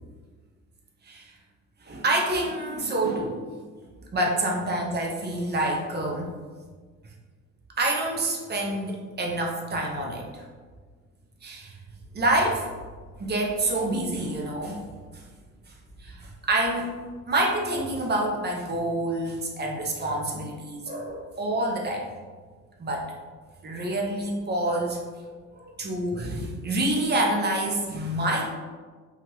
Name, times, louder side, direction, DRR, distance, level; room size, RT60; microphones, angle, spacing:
voice 1, 1.0-1.3 1.8-3.4 4.1-6.3 7.8-10.4 11.4-11.7 12.1-12.7 13.2-14.8 15.7-15.8 16.0-16.9 17.3-22.1 22.8-23.1 23.6-25.0 25.5-28.5, right 1 dB, 35° right, -1 dB, 0.6 m, -27 dB
2.8 x 2.4 x 2.9 m, 1.5 s
cardioid pair, 90°, 30 cm